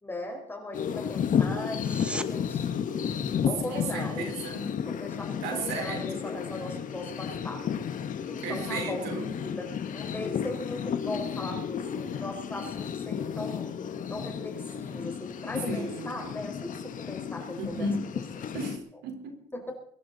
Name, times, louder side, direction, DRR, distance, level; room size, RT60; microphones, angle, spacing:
voice 1, 0.0-2.7 3.5-4.4 4.9-7.6 8.3-9.7 9.9-13.7 14.1-17.9 18.4-18.7 19.5-19.7, left 1 dB, 10° left, 1 dB, 5.0 m, -39 dB
sound 1, 0.7-18.8, left 7 dB, 50° left, 1.6 m, -33 dB
sound 2, 1.7-2.3 13.7-13.8, right 1 dB, 5° right, 0.9 m, -37 dB
voice 2, 3.7-4.7 5.4-6.3 8.4-9.3 15.7-16.4 17.6-18.1 18.5-19.4, right 2 dB, 85° right, 4 dB, 4.4 m, -35 dB
23.5 x 12.0 x 4.2 m, 0.64 s
cardioid pair, 110°, 17 cm